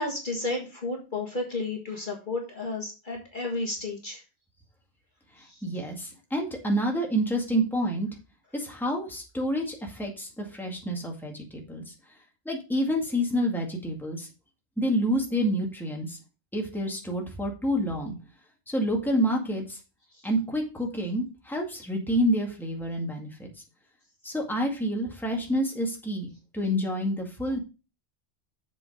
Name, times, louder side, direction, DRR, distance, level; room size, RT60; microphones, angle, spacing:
voice 1, 0.0-4.2 5.5-5.6, left 2 dB, 40° left, 0 dB, 1.8 m, -32 dB
voice 2, 5.4-8.1 8.5-11.9 12.5-14.3 14.8-16.2 16.5-18.2 18.7-19.8 20.2-23.5 24.2-27.6, equal, ahead, 0 dB, 2.0 m, -28 dB
7.3 x 5.2 x 5.1 m, 0.30 s
omnidirectional pair, 1.3 m